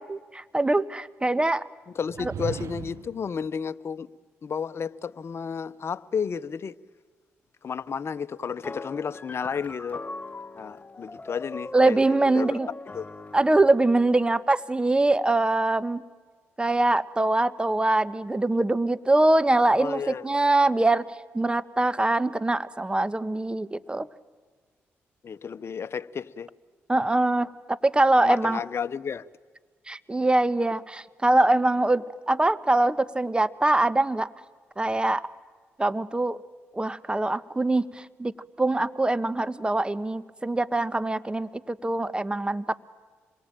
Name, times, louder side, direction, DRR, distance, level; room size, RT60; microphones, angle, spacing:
voice 1, 0.0-1.6 2.2-2.3 11.7-12.7 13.3-16.0 16.6-21.0 21.3-24.1 26.9-28.6 29.9-34.3 34.8-35.3 35.8-36.4 36.7-42.8, right 2 dB, 20° right, 1.3 m, -23 dB
voice 2, 1.9-4.1 4.4-6.8 7.6-10.0 10.6-12.6 12.9-13.1 19.8-20.2 25.2-26.5 28.2-29.3, left 6 dB, 50° left, 0.9 m, -32 dB
sound 1, 2.0-3.2, right 7 dB, 65° right, 1.4 m, -36 dB
sound 2, 8.6-13.8, left 3 dB, 30° left, 1.1 m, -40 dB
27.0 x 22.5 x 9.1 m
supercardioid pair, 50°, 5 cm